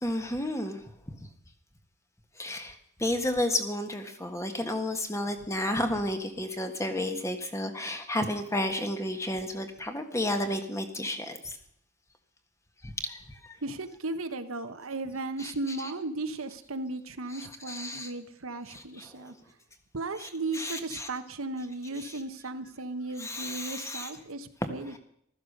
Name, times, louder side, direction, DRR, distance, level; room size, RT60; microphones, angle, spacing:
voice 1, 0.0-0.8 2.4-11.6 12.8-13.6 15.4-15.9 17.3-18.1 18.7-19.3 20.2-21.1 22.0-22.2 23.2-24.1 24.9-25.0, left 1 dB, 15° left, 6 dB, 1.5 m, -32 dB
voice 2, 13.6-19.3 19.9-25.0, right 2 dB, 75° right, 9 dB, 1.3 m, -36 dB
15.0 x 13.5 x 6.7 m, 0.70 s
head